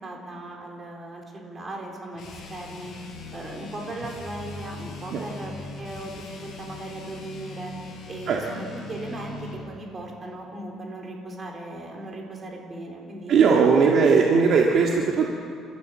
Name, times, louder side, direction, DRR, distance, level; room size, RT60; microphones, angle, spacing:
voice 1, 0.0-13.3 13.7-14.1, right 2 dB, 25° right, 0 dB, 3.8 m, -37 dB
sound 1, 2.1-9.7, left 4 dB, 50° left, 5.1 m, -40 dB
voice 2, 13.3-15.2, right 5 dB, 50° right, -1 dB, 1.8 m, -18 dB
29.5 x 13.5 x 7.5 m, 2.5 s
cardioid pair, 150°, 0 cm